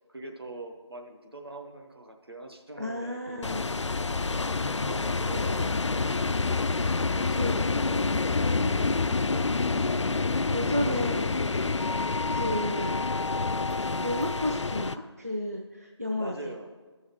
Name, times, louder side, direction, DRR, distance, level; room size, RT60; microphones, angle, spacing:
voice 1, 0.1-3.9 4.6-6.4 7.1-8.1 8.8-9.1 10.8-11.4 16.2-16.7, right 1 dB, 55° right, 3 dB, 1.0 m, -43 dB
voice 2, 2.8-3.8 7.3-7.5 8.6-8.8 10.5-11.2 12.1-13.0 13.5-16.5, left 1 dB, 30° right, 2 dB, 0.4 m, -32 dB
sound 1, 3.4-14.9, left 3 dB, 75° left, 0.4 m, -27 dB
13.0 x 6.2 x 3.6 m, 1.4 s
figure-of-eight pair, 175°, 15 cm